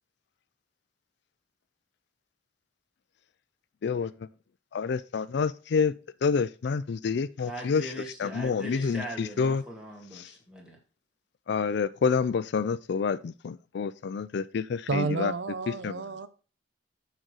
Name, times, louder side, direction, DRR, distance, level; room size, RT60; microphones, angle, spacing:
voice 1, 4.7-5.9 6.2-7.9 8.2-9.6 10.2-10.3 11.5-15.3 15.8-15.9, left 5 dB, 65° left, 0.4 m, -28 dB
voice 2, 7.4-10.8, equal, 5° right, 2.4 m, -40 dB
voice 3, 14.9-16.3, right 3 dB, 70° right, 0.7 m, -30 dB
6.4 x 5.2 x 6.2 m
head